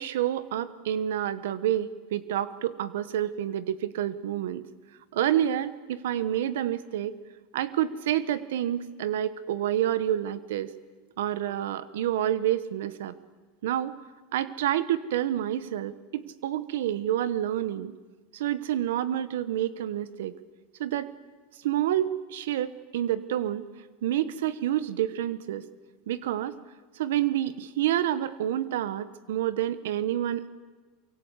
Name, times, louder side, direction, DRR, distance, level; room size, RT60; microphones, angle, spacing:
voice 1, 0.0-4.6 5.1-7.2 7.5-10.7 11.2-13.1 13.6-13.9 14.3-17.9 18.3-20.3 20.8-21.1 21.6-23.6 24.0-25.6 26.1-26.6 27.0-30.5, right 11 dB, 85° right, 15 dB, 1.2 m, -28 dB
24.5 x 23.5 x 8.3 m, 1.3 s
supercardioid pair, 140°, 0 cm